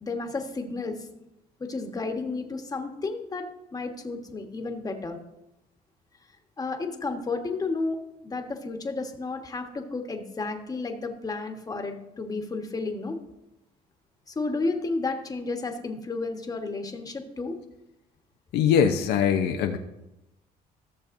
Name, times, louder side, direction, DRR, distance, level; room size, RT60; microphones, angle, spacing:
voice 1, 0.0-1.1 1.6-5.2 6.6-13.2 14.3-17.6, left 3 dB, 20° left, 4 dB, 1.3 m, -32 dB
voice 2, 18.5-19.8, left 8 dB, 75° left, 5 dB, 0.7 m, -22 dB
15.0 x 6.8 x 2.6 m, 0.91 s
cardioid pair, 110°, 17 cm